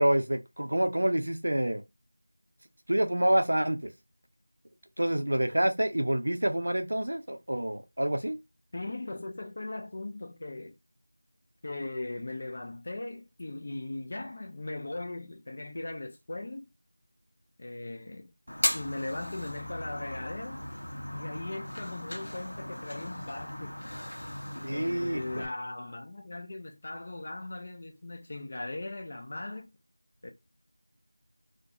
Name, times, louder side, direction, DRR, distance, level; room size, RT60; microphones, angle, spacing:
voice 1, 0.0-1.8 2.9-3.8 5.0-8.4 24.6-25.4, right 1 dB, 60° right, 0.5 m, -27 dB
voice 2, 8.7-10.7 11.6-16.7 17.6-18.3 18.7-20.6 21.1-23.8 24.5-29.7 30.2-30.3, left 2 dB, 20° left, 0.4 m, -39 dB
Fire, 18.5-25.5, left 1 dB, 85° left, 0.6 m, -37 dB
2.4 x 2.1 x 2.8 m
figure-of-eight pair, 180°, 0 cm